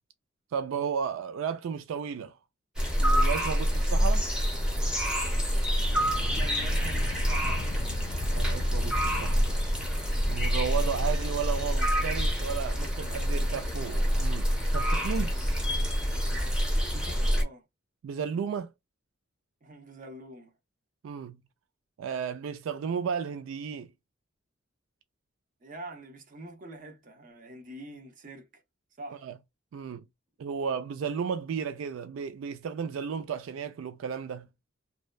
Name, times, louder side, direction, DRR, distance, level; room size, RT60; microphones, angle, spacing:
voice 1, 0.5-2.4 3.0-4.3 8.3-9.5 10.3-15.3 18.0-18.7 21.0-21.4 22.0-23.9 29.2-29.3 29.7-30.0 30.4-34.5, right 7 dB, 85° right, 0.3 m, -33 dB
sound 1, 2.8-17.4, equal, 5° right, 0.7 m, -27 dB
sound 2, 5.9-11.5, left 3 dB, 60° left, 0.3 m, -40 dB
voice 2, 6.3-7.7 16.9-17.6 19.6-20.5 25.6-28.6 29.0-29.2, right 1 dB, 40° right, 0.6 m, -45 dB
2.7 x 2.1 x 2.2 m
head